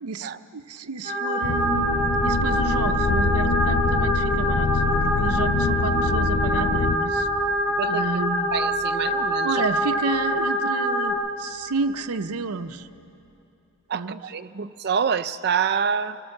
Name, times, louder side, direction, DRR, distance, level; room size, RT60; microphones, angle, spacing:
voice 1, 0.0-1.9 2.2-7.3 7.9-8.5 9.4-12.9 13.9-14.2 14.5-14.7, right 4 dB, 85° right, 10 dB, 0.7 m, -30 dB
sound 1, 1.0-11.1, equal, 25° right, 4.2 m, -25 dB
sound 2, 1.4-7.0, left 3 dB, 80° left, 0.8 m, -25 dB
sound 3, 1.7-13.1, equal, 20° left, 5.7 m, -43 dB
voice 2, 8.5-9.6 13.9-16.2, right 6 dB, 45° right, 12 dB, 0.5 m, -26 dB
26.0 x 17.5 x 6.6 m, 2.8 s
head